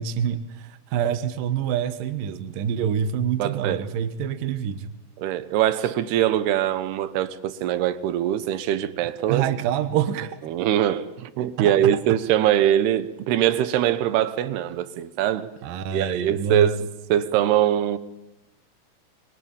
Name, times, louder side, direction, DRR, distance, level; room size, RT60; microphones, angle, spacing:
voice 1, 0.0-4.9 5.8-5.9 9.3-10.4 11.6-12.2 15.6-16.7, right 8 dB, 70° right, 2.8 m, -26 dB
voice 2, 3.4-3.8 5.2-9.5 10.5-15.5 15.9-18.0, right 11 dB, 85° right, 3.2 m, -23 dB
25.0 x 23.0 x 9.0 m
omnidirectional pair, 4.5 m